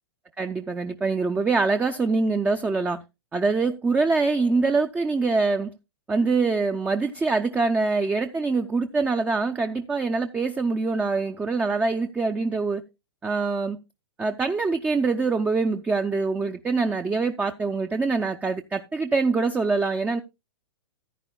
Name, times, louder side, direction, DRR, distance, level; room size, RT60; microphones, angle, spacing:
voice 1, 0.4-3.0 3.3-5.7 6.1-12.8 13.2-13.8 14.2-20.2, right 4 dB, 10° right, 0.5 m, -24 dB
14.0 x 9.9 x 2.2 m
hypercardioid pair, 130°, 14 cm